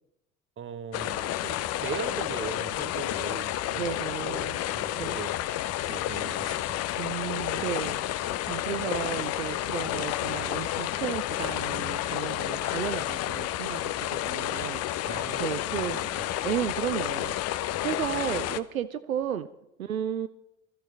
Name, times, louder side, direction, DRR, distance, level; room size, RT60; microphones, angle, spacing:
voice 1, 0.6-5.4 5.9-6.6 7.5-7.8 15.0-15.5 15.8-16.3, right 7 dB, 30° right, 1.1 m, -40 dB
sound 1, 0.9-18.6, left 13 dB, 40° left, 0.6 m, -31 dB
voice 2, 3.8-4.6 5.0-5.2 7.0-16.1 16.4-19.5 19.8-20.3, right 9 dB, 85° right, 0.5 m, -34 dB
20.0 x 13.5 x 3.4 m
figure-of-eight pair, 55°, 40 cm